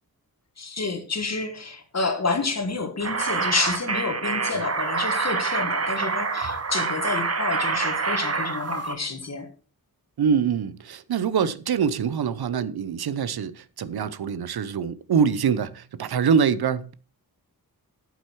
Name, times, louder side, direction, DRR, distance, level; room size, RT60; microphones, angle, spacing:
voice 1, 0.6-9.5, left 4 dB, 45° left, 1.8 m, -29 dB
sound 1, 3.0-8.9, right 4 dB, 40° right, 1.1 m, -26 dB
voice 2, 10.2-16.9, right 7 dB, 90° right, 0.7 m, -24 dB
9.1 x 8.0 x 4.6 m
wide cardioid pair, 100°, 37 cm